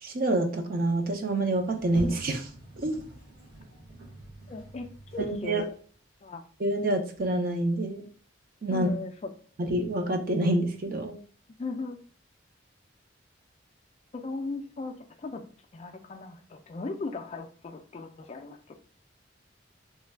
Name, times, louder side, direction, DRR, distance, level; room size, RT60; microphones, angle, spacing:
voice 1, 0.0-2.5 2.8-3.0 5.2-5.6 6.6-8.1 8.6-8.9 9.6-11.2, right 1 dB, 50° right, 4 dB, 0.5 m, -27 dB
Sliding door, 1.5-5.9, right 1 dB, 75° right, 1.1 m, -44 dB
voice 2, 4.5-5.7 6.2-6.5 8.7-9.3 11.6-12.0 14.1-15.4 15.7-18.8, left 3 dB, 35° left, 5 dB, 0.3 m, -37 dB
3.2 x 2.2 x 3.3 m, 0.43 s
head